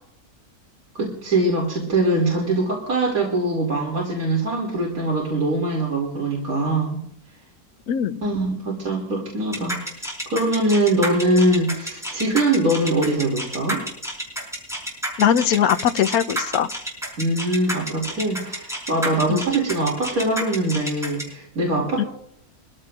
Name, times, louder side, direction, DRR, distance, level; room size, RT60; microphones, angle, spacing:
voice 1, 0.9-7.0 8.2-13.8 17.2-22.1, right 2 dB, 65° right, -3 dB, 3.1 m, -22 dB
voice 2, 7.9-8.2 15.2-16.7 19.3-19.4 22.0-22.1, left 9 dB, 75° left, 9 dB, 1.2 m, -20 dB
sound 1, 9.5-21.2, equal, ahead, 4.4 m, -29 dB
23.5 x 15.0 x 2.5 m, 0.70 s
omnidirectional pair, 1.6 m